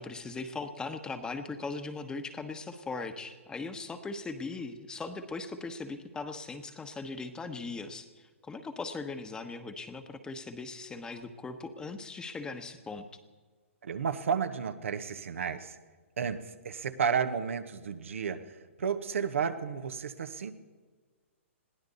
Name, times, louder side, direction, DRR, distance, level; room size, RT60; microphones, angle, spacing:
voice 1, 0.0-13.1, left 3 dB, 10° left, 8 dB, 1.2 m, -39 dB
voice 2, 13.8-15.8 16.2-18.5 18.8-20.5, right 6 dB, 70° right, 9 dB, 1.2 m, -32 dB
21.5 x 16.0 x 4.1 m, 1.4 s
hypercardioid pair, 130°, 7 cm